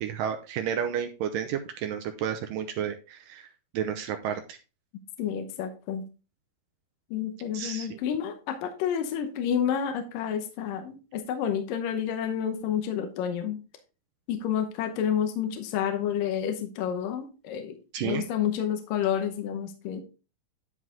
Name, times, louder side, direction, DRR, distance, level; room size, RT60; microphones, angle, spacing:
voice 1, 0.0-3.5 3.7-4.6 7.5-8.0 17.9-18.2, right 9 dB, 80° right, 6 dB, 2.1 m, -31 dB
voice 2, 5.2-6.1 7.1-13.6 14.3-20.0, left 9 dB, 70° left, 6 dB, 2.4 m, -29 dB
11.0 x 4.8 x 3.7 m, 0.32 s
omnidirectional pair, 4.4 m